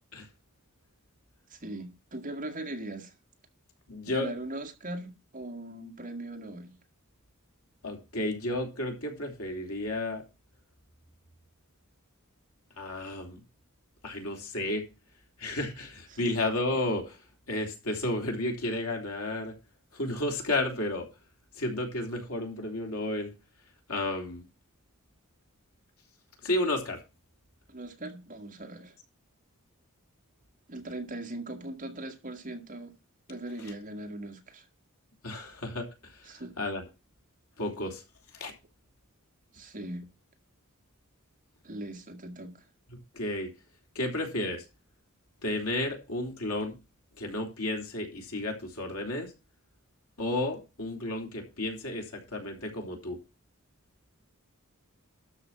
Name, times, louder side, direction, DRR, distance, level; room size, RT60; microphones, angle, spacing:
voice 1, 1.5-3.1 4.1-6.8 16.1-16.3 27.7-29.0 30.7-32.9 33.3-34.7 36.2-36.6 39.5-40.1 41.6-42.7, right 1 dB, 40° right, 1.9 m, -40 dB
voice 2, 3.9-4.3 7.8-10.2 12.8-13.4 14.0-14.8 15.4-17.2 17.5-19.5 19.9-21.1 21.5-23.3 23.9-24.4 26.4-27.0 35.2-35.9 36.1-36.3 36.6-36.8 37.6-38.0 38.3-38.5 43.1-43.5 43.9-44.6 45.4-46.7 47.2-49.3 50.2-53.2, left 1 dB, 90° left, 3.4 m, -32 dB
12.5 x 5.1 x 7.5 m
head